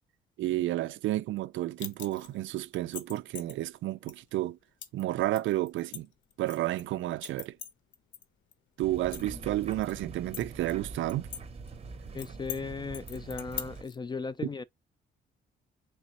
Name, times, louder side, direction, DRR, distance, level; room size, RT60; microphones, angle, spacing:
voice 1, 0.4-4.6 4.9-6.1 6.4-7.6 8.8-11.3, right 15 dB, 75° right, 0.4 m, -31 dB
sound 1, 1.8-2.3 2.7-3.5 4.1-4.2 4.8-5.0 5.3-6.8 7.2-8.2 8.5-8.6 9.0-9.9 10.3-11.4 11.7-11.8 12.2-12.6 12.9-13.9, left 10 dB, 75° left, 0.7 m, -41 dB
sound 2, 8.8-13.8, right 4 dB, 30° right, 0.7 m, -44 dB
voice 2, 12.1-14.6, left 4 dB, 20° left, 0.3 m, -37 dB
3.3 x 3.0 x 4.1 m
cardioid pair, 90°, 20 cm